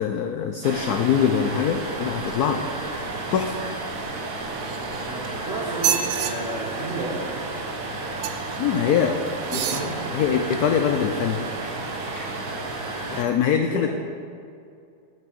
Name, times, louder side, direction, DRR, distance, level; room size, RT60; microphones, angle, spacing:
voice 1, 0.0-2.6 3.3-3.5 8.6-9.2 9.5-9.6 10.1-11.4 13.1-13.9, left 8 dB, 90° left, 5 dB, 0.8 m, -23 dB
sound 1, 0.6-13.2, right 2 dB, 60° right, 0.9 m, -32 dB
voice 2, 4.6-7.4 9.4-10.1 13.7-13.9, right 2 dB, 40° right, -8 dB, 1.9 m, -32 dB
sound 2, 4.6-5.3 5.7-6.3 8.2-8.6 9.4-9.9 10.5-10.6, right 9 dB, 85° right, 1.5 m, -27 dB
sound 3, 9.2-10.1 10.6-13.1, left 1 dB, 60° left, 2.2 m, -44 dB
7.8 x 6.0 x 6.9 m, 2.4 s
omnidirectional pair, 2.2 m